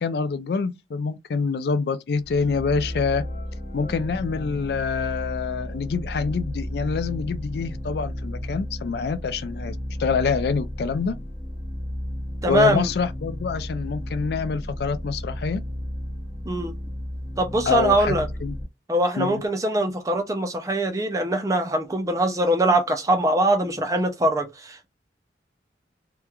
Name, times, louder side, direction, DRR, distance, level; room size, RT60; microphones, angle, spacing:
voice 1, 0.0-3.3 3.7-11.2 12.4-15.6 17.7-18.6 19.2-19.4, left 5 dB, 60° left, 0.3 m, -26 dB
sound 1, 2.2-18.6, left 1 dB, 35° left, 0.9 m, -33 dB
voice 2, 12.4-12.9 16.4-16.7 17.4-18.3 18.9-24.9, right 1 dB, 20° right, 0.4 m, -22 dB
3.0 x 2.2 x 2.3 m
head